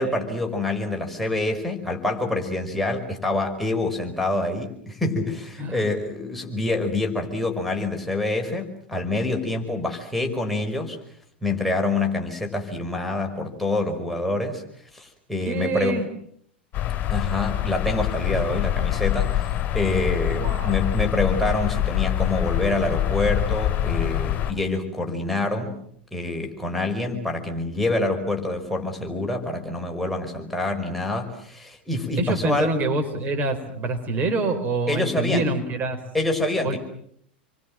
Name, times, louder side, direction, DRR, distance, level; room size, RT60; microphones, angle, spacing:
voice 1, 0.0-4.7 5.0-5.4 5.7-8.7 8.9-10.9 11.4-14.5 15.3-16.0 17.1-19.3 19.7-25.7 26.1-31.3 31.9-32.7 34.9-35.5 36.1-36.8, left 2 dB, ahead, 1 dB, 5.4 m, -26 dB
voice 2, 15.5-16.1 18.3-18.4 20.3-20.8 32.2-36.0 36.6-36.8, right 2 dB, 30° right, 7 dB, 4.6 m, -26 dB
sound 1, 16.7-24.5, left 12 dB, 35° left, 3.3 m, -25 dB
29.5 x 24.0 x 7.6 m, 0.68 s
figure-of-eight pair, 90°, 6 cm